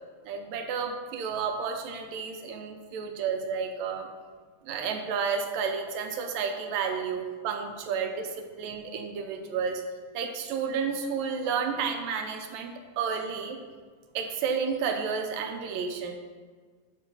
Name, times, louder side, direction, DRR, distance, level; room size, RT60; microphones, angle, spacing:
voice 1, 0.3-4.1 4.6-9.8 10.1-13.6 14.2-16.1, right 6 dB, 80° right, 4 dB, 1.8 m, -31 dB
7.2 x 2.7 x 5.3 m, 1.5 s
omnidirectional pair, 3.5 m